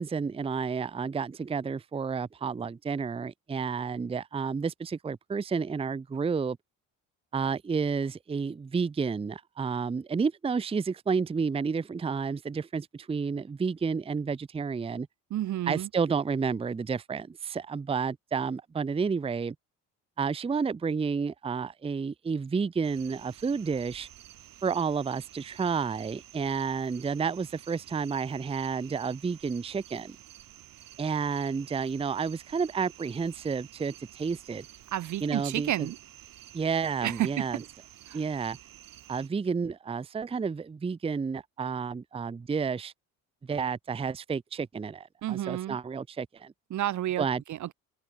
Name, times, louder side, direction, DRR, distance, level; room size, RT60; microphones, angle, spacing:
voice 1, 0.0-6.6 7.3-15.1 15.7-19.6 20.2-24.1 24.6-30.2 31.0-34.7 35.2-35.9 36.5-37.6 38.1-38.6 39.1-42.9 43.5-46.5 47.2-47.4, right 5 dB, 15° right, 0.5 m, -31 dB
voice 2, 15.3-15.9 34.9-36.0 37.0-37.6 38.1-38.2 45.2-45.8 46.7-47.7, right 13 dB, 55° right, 0.7 m, -31 dB
sound 1, 22.8-39.3, right 12 dB, 70° right, 6.0 m, -51 dB
open air
cardioid pair, 85°, 35 cm